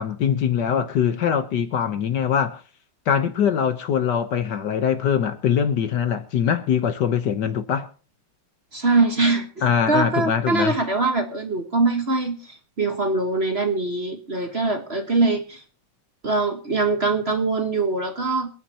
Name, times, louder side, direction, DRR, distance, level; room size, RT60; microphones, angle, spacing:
voice 1, 0.0-2.6 3.1-7.9 9.6-10.7, left 8 dB, 60° left, 1.5 m, -22 dB
voice 2, 8.7-15.6 16.2-18.5, right 3 dB, 35° right, 1.4 m, -23 dB
27.0 x 9.6 x 2.9 m
omnidirectional pair, 2.3 m